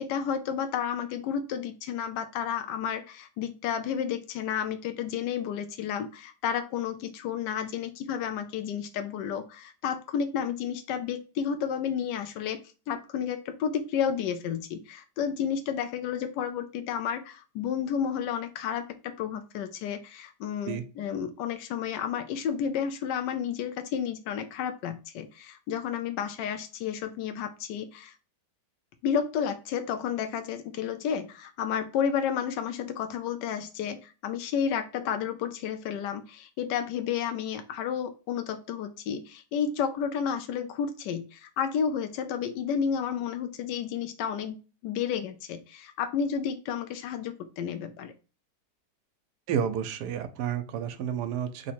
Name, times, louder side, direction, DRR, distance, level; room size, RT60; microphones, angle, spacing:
voice 1, 0.0-12.6 12.9-28.1 29.0-48.1, left 8 dB, 85° left, 8 dB, 1.2 m, -31 dB
voice 2, 49.5-51.7, right 8 dB, 80° right, 10 dB, 1.2 m, -30 dB
3.5 x 2.8 x 4.2 m, 0.34 s
omnidirectional pair, 1.8 m